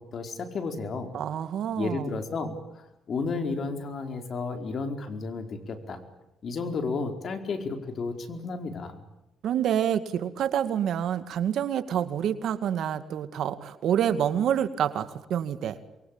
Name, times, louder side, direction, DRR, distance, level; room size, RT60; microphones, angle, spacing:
voice 1, 0.0-1.1 1.8-6.0 6.4-9.0, left 4 dB, 55° left, 6 dB, 4.6 m, -32 dB
voice 2, 1.1-2.2 9.4-15.8, right 9 dB, 70° right, 11 dB, 2.2 m, -27 dB
27.5 x 23.5 x 8.9 m, 0.93 s
cardioid pair, 90°, 0 cm